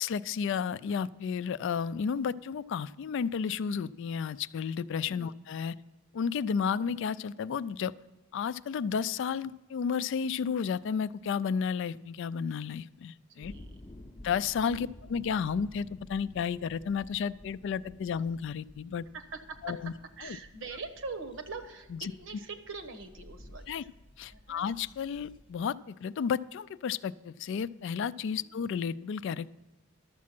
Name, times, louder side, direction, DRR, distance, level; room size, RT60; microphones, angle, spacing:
voice 1, 0.0-5.7 6.1-7.9 8.3-13.5 14.2-19.0 19.6-19.9 20.2-20.4 21.9-22.1 23.7-23.8 24.2-29.5, left 6 dB, 60° left, 17 dB, 0.3 m, -32 dB
sound 1, 13.4-25.7, left 1 dB, 25° left, 0.6 m, -53 dB
voice 2, 13.4-13.8 14.7-14.9 19.1-19.8 20.2-23.9 24.3-24.7 28.4-28.5, right 4 dB, 65° right, 9 dB, 1.1 m, -43 dB
12.0 x 7.4 x 5.9 m, 1.1 s
head